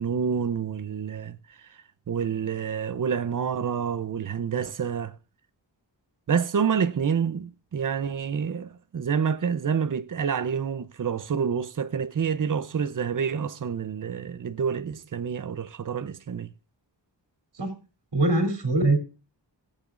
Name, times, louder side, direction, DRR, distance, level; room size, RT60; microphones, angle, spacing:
voice 1, 0.0-1.7 2.1-5.2 6.3-16.5, right 7 dB, 45° right, 0.7 m, -28 dB
voice 2, 18.1-19.0, right 2 dB, 65° right, 3.1 m, -22 dB
18.0 x 8.4 x 2.5 m
wide cardioid pair, 110°, 43 cm